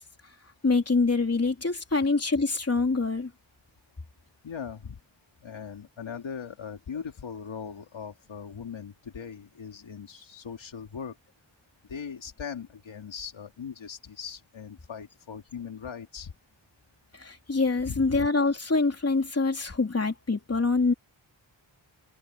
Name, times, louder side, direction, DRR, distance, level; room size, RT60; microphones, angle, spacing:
voice 1, 0.6-3.3 17.2-20.9, left 3 dB, 30° left, 3.4 m, -25 dB
voice 2, 4.4-5.0 5.4-11.2 11.9-16.3 17.9-18.3, left 6 dB, 80° left, 2.8 m, -39 dB
wide cardioid pair, 95°, 46 cm